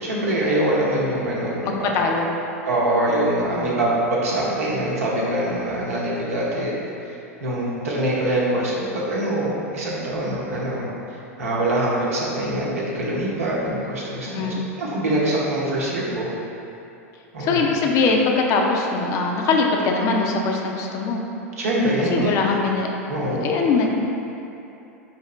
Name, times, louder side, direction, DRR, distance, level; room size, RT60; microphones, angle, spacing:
voice 1, 0.0-1.9 2.6-6.8 7.1-10.9 11.4-16.3 17.3-17.7 21.6-22.3 23.1-23.4, right 1 dB, 70° right, -6 dB, 0.8 m, -24 dB
voice 2, 1.6-2.4 3.5-3.8 14.2-14.6 17.4-21.2 22.1-22.9 23.2-23.9, left 4 dB, 40° left, 1 dB, 0.5 m, -22 dB
5.0 x 2.7 x 3.2 m, 2.8 s
figure-of-eight pair, 90°, 8 cm